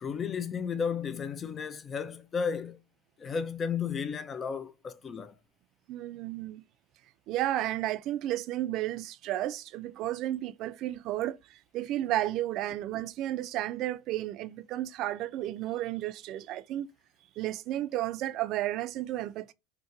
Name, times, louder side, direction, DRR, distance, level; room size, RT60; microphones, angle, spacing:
voice 1, 0.0-2.8 3.2-5.3, left 6 dB, 30° left, 0.3 m, -33 dB
voice 2, 5.9-6.6 7.3-16.9 17.4-19.5, right 14 dB, 55° right, 0.3 m, -33 dB
2.7 x 2.2 x 2.6 m
hypercardioid pair, 90°, 0 cm